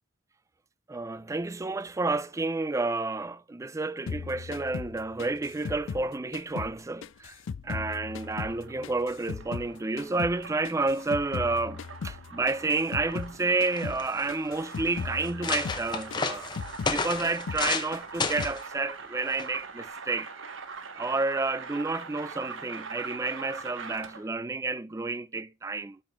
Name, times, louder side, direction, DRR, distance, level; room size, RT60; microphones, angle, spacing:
voice 1, 0.9-16.5 16.9-20.3 20.9-26.0, right 3 dB, 15° right, 0.3 m, -30 dB
sound 1, 4.1-6.8 7.0-9.7 10.0-13.3 13.6-14.0 14.3-17.0 17.2-17.7 17.9-18.6, left 5 dB, 75° left, 0.4 m, -38 dB
sound 2, 7.7-24.4, right 5 dB, 75° right, 1.2 m, -43 dB
sound 3, 13.3-13.4 13.7-14.2 14.8-14.9 15.2-17.9 18.2-18.6 19.4-19.6, left 4 dB, 20° left, 0.8 m, -31 dB
8.5 x 6.6 x 3.0 m
head